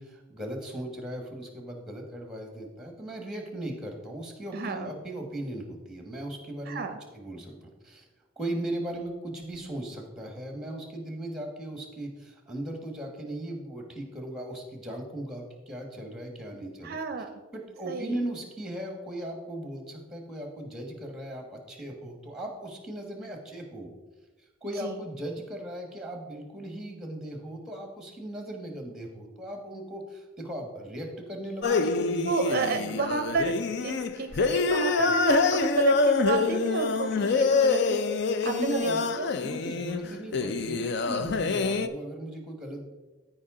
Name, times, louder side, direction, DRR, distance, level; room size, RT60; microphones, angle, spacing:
voice 1, 0.0-6.8 7.1-8.0 8.4-17.0 17.5-23.9 24.6-32.9 38.4-39.0 39.4-42.9, right 1 dB, ahead, 2 dB, 1.5 m, -38 dB
voice 2, 4.5-4.9 6.7-7.0 16.8-17.3 17.9-18.1 24.8-24.9 32.2-33.6 33.8-38.0 38.4-39.4, right 4 dB, 45° right, 7 dB, 0.5 m, -30 dB
sound 1, 31.6-41.9, left 4 dB, 55° left, 0.5 m, -26 dB
14.5 x 4.9 x 3.8 m, 1.3 s
head